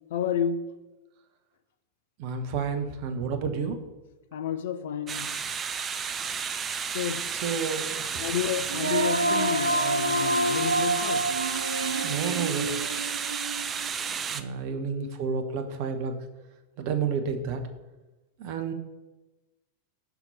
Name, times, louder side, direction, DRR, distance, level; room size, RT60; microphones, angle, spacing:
voice 1, 0.1-0.8 4.3-5.3 6.9-7.3 8.2-11.3 14.7-15.1, left 8 dB, 60° left, 0.4 m, -31 dB
voice 2, 2.2-3.8 7.4-8.0 12.0-12.7 14.3-16.1 16.8-17.6 18.4-18.7, right 6 dB, 45° right, 0.9 m, -30 dB
sound 1, 5.1-14.4, right 6 dB, 25° right, 0.4 m, -32 dB
Female singing, 8.7-13.9, right 2 dB, 80° right, 0.5 m, -28 dB
5.9 x 4.6 x 5.5 m
figure-of-eight pair, 90°, 0 cm